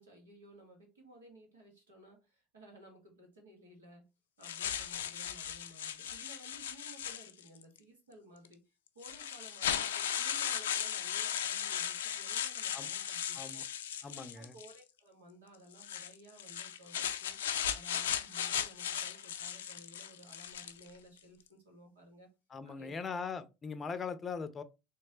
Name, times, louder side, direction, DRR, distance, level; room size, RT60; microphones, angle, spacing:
voice 1, 0.0-4.1 4.4-8.6 8.9-13.6 14.1-17.4 17.7-22.3 22.6-23.1, right 1 dB, 90° right, 1.4 m, -57 dB
sound 1, 4.4-7.6 8.5-8.6 9.0-14.8 15.7-20.9, left 9 dB, 85° left, 0.3 m, -37 dB
voice 2, 14.0-14.5 22.5-24.6, left 5 dB, 30° left, 0.5 m, -40 dB
3.2 x 3.1 x 2.9 m
hypercardioid pair, 75°, 0 cm